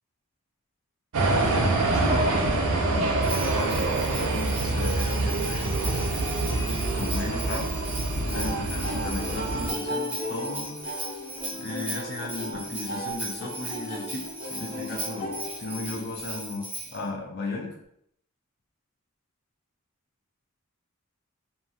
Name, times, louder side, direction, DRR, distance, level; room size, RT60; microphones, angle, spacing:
sound 1, 1.1-9.7, right 2 dB, 85° right, 0.5 m, -26 dB
voice 1, 1.4-2.6 2.8-5.9 6.3-7.8 8.3-11.1 11.6-17.8, left 3 dB, 50° left, 0 dB, 0.4 m, -36 dB
Bell, 3.2-17.0, right 1 dB, 5° right, 0.6 m, -38 dB
sound 2, 8.3-16.3, equal, 80° left, 1.1 m, -36 dB
2.7 x 2.3 x 2.7 m, 0.70 s
head